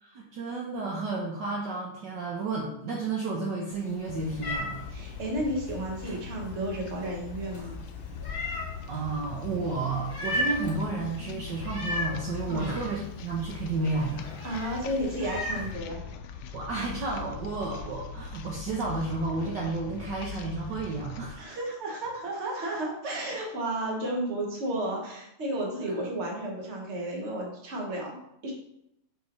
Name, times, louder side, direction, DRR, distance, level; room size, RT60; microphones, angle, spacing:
voice 1, 0.0-4.8 8.9-14.3 16.5-21.6 25.8-25.9, right 3 dB, 60° right, -2 dB, 1.4 m, -32 dB
Meow, 3.7-15.7, left 1 dB, 25° left, 1.5 m, -38 dB
sound 1, 4.1-21.4, left 7 dB, 80° left, 1.4 m, -41 dB
voice 2, 4.9-7.7 12.5-12.7 14.4-16.0 21.3-28.5, right 1 dB, 35° right, -1 dB, 1.5 m, -32 dB
5.3 x 4.6 x 4.5 m, 0.79 s
omnidirectional pair, 2.4 m